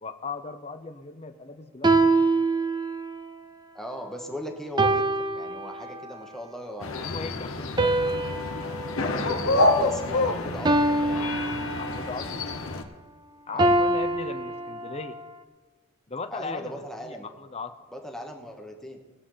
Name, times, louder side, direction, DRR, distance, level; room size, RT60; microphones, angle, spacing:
voice 1, 0.0-2.4 7.1-8.0 11.8-12.4 13.5-15.2 16.1-17.7, left 4 dB, 30° left, 8 dB, 0.7 m, -38 dB
sound 1, 1.8-3.2 4.8-6.2 7.8-10.1 10.7-12.2 13.6-15.2, right 2 dB, 20° right, 0.5 m, -25 dB
voice 2, 3.7-5.0 5.3-7.2 9.0-10.9 13.5-13.8 16.3-17.3 17.9-19.0, equal, ahead, 1 dB, 1.1 m, -38 dB
sound 2, 6.8-12.8, left 2 dB, 65° left, 1.0 m, -27 dB
20.0 x 8.1 x 3.9 m, 1.3 s
head